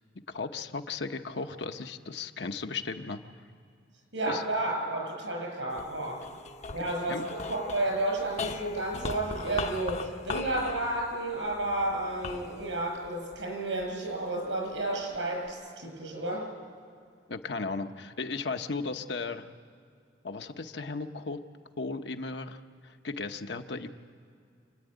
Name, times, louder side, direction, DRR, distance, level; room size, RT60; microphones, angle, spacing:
voice 1, 0.3-3.2 4.2-4.4 7.1-7.3 17.3-19.5 20.2-21.4 21.8-23.9, left 4 dB, 65° left, 6 dB, 0.9 m, -36 dB
voice 2, 4.1-6.2 6.7-16.5, right 1 dB, 80° right, 1 dB, 7.2 m, -31 dB
sound 1, 5.7-14.2 14.8-15.5, left 4 dB, 35° left, 0.8 m, -40 dB
28.0 x 10.5 x 9.2 m, 2.3 s
head